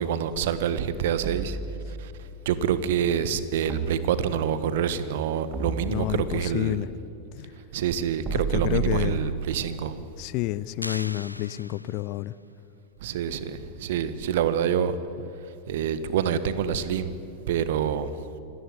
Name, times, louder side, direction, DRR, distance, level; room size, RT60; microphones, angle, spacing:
voice 1, 0.0-1.6 1.9-2.1 2.4-6.8 7.7-10.0 13.0-15.0 15.7-17.2 17.5-18.2, right 8 dB, 55° right, 13 dB, 1.5 m, -27 dB
sound 1, 1.2-2.3 3.7-4.7 5.5-6.6 8.2-9.7, right 7 dB, 25° right, 2.9 m, -32 dB
voice 2, 5.9-6.9 7.3-7.5 8.3-9.2 10.2-12.3, left 17 dB, 45° left, 20 dB, 0.6 m, -29 dB
sound 2, 10.8-12.3, left 1 dB, 90° left, 0.5 m, -40 dB
26.5 x 17.5 x 9.6 m, 2.7 s
figure-of-eight pair, 90°, 0 cm